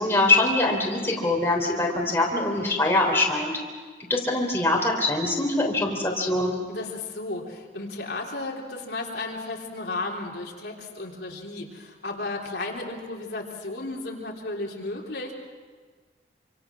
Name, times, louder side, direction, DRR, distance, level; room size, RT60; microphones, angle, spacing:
voice 1, 0.0-3.5 4.1-6.5, left 2 dB, 15° left, -1 dB, 3.5 m, -23 dB
voice 2, 6.7-15.3, left 2 dB, 65° left, -2 dB, 3.6 m, -34 dB
27.0 x 26.0 x 6.2 m, 1.5 s
head